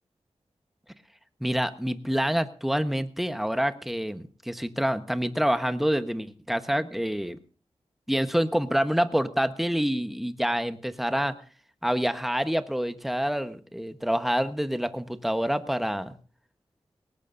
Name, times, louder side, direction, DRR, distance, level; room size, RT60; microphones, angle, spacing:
voice 1, 1.4-7.4 8.1-11.4 11.8-16.1, equal, ahead, 10 dB, 1.1 m, -27 dB
19.5 x 18.0 x 2.6 m, 0.37 s
wide cardioid pair, 55°, 11 cm